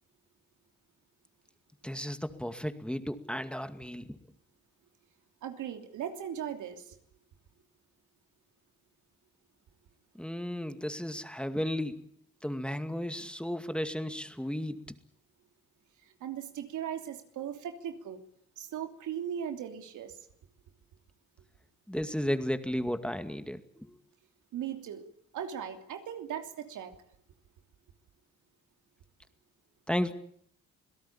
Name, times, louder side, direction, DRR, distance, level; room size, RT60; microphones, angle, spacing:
voice 1, 1.8-4.2 10.2-12.1 12.4-14.8 21.9-24.0 29.9-30.1, equal, 5° left, 2.2 m, -34 dB
voice 2, 5.4-7.0 16.0-18.2 18.6-20.2 24.5-25.0 25.3-27.0, right 9 dB, 80° right, 3.0 m, -38 dB
26.5 x 17.5 x 8.8 m
cardioid pair, 90°, 30 cm